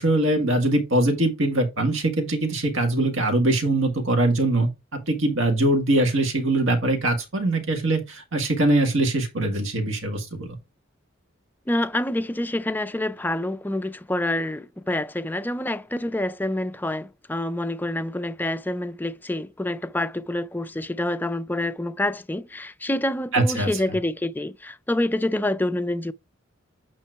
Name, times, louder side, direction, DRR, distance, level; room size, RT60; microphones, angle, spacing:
voice 1, 0.0-10.5 23.3-23.7, right 1 dB, 70° right, 1.8 m, -22 dB
voice 2, 11.7-26.1, left 1 dB, 10° left, 0.4 m, -27 dB
8.6 x 3.1 x 4.6 m
head